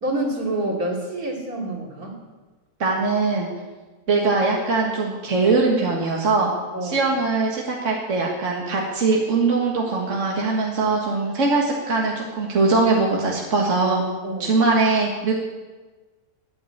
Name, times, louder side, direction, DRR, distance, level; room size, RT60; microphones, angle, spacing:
voice 1, 0.0-2.2 6.7-7.1 14.2-14.6, right 1 dB, 70° right, -1 dB, 3.2 m, -27 dB
voice 2, 2.8-3.5 4.1-6.5 6.8-14.0 14.4-15.3, right 3 dB, 55° right, -2 dB, 2.0 m, -21 dB
12.5 x 10.0 x 8.6 m, 1.3 s
omnidirectional pair, 1.6 m